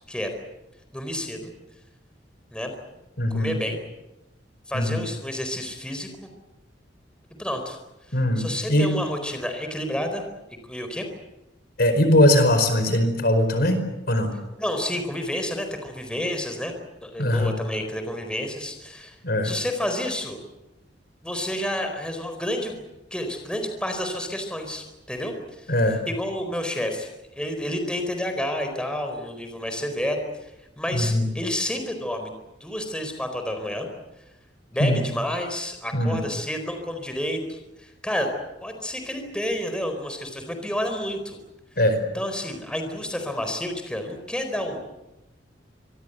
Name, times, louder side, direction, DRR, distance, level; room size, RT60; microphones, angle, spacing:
voice 1, 0.9-1.5 2.5-2.7 3.3-3.8 4.7-6.3 7.4-7.8 8.1-10.2 10.7-11.0 14.6-16.7 17.0-19.2 19.4-20.4 21.2-22.8 23.1-27.1 27.4-30.5 30.8-32.3 32.6-33.9 34.7-38.3 38.6-41.4 42.1-44.8, left 1 dB, 5° left, 5 dB, 4.3 m, -30 dB
voice 2, 3.2-3.6 4.7-5.0 8.1-8.9 11.8-14.3 17.2-17.5 19.2-19.5 25.7-26.0 30.9-31.3 34.8-35.0 35.9-36.2 41.8-42.0, left 1 dB, 55° left, 9 dB, 4.8 m, -21 dB
26.5 x 23.0 x 8.1 m, 0.98 s
head